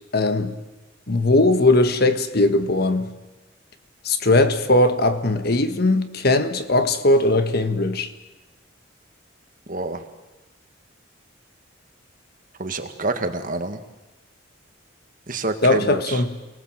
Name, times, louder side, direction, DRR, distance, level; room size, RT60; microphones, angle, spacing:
voice 1, 0.1-0.6 1.1-3.1 4.0-8.1 15.6-16.4, left 2 dB, 55° left, 1.5 m, -19 dB
voice 2, 9.7-10.0 12.6-13.8 15.3-16.2, right 2 dB, 45° right, 1.7 m, -27 dB
28.5 x 19.5 x 7.6 m
head